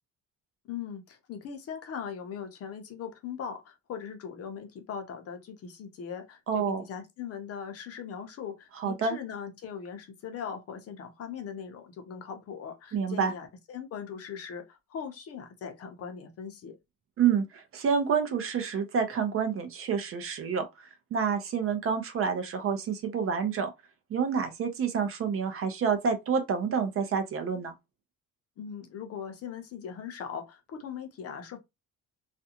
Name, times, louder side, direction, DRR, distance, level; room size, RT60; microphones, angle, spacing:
voice 1, 0.6-16.8 28.6-31.6, left 7 dB, 45° left, 0.6 m, -40 dB
voice 2, 6.5-6.8 8.8-9.2 12.9-13.3 17.2-23.7 24.1-27.7, right 6 dB, 45° right, 0.5 m, -28 dB
2.5 x 2.2 x 2.8 m
cardioid pair, 160°, 33 cm